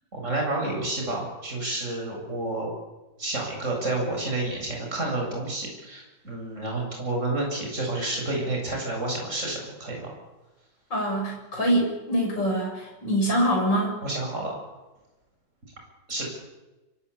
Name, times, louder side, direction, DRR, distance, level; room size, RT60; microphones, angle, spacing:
voice 1, 0.1-2.7 3.2-10.1 14.0-14.5 16.1-16.3, right 2 dB, 40° right, 0 dB, 8.1 m, -30 dB
voice 2, 10.9-14.0, equal, 65° left, 0 dB, 8.3 m, -24 dB
25.5 x 25.5 x 8.6 m, 1.1 s
omnidirectional pair, 2.1 m